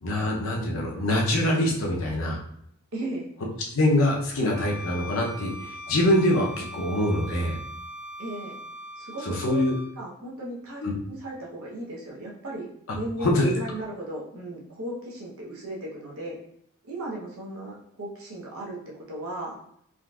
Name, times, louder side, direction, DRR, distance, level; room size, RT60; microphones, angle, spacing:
voice 1, 0.0-2.4 3.7-7.6 9.2-9.7 10.8-10.9 12.9-13.5, left 1 dB, 65° left, 0 dB, 0.7 m, -24 dB
voice 2, 2.9-3.3 8.2-8.6 9.0-9.7 10.0-10.8 11.1-16.4 16.8-18.8 19.1-19.6, right 1 dB, 75° right, -3 dB, 0.8 m, -36 dB
Bowed string instrument, 4.5-9.9, left 1 dB, 35° right, 0.7 m, -41 dB
3.6 x 2.5 x 2.3 m, 0.69 s
head